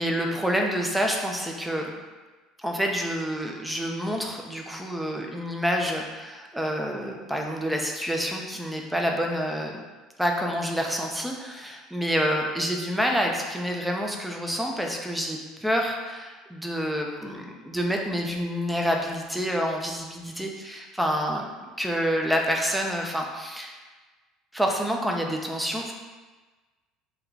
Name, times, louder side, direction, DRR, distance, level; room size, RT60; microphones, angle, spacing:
voice 1, 0.0-1.9 2.6-9.8 10.2-21.4 21.8-23.8 24.5-25.9, equal, 5° right, 1 dB, 0.5 m, -28 dB
3.2 x 2.2 x 3.8 m, 1.3 s
hypercardioid pair, 80°, 0 cm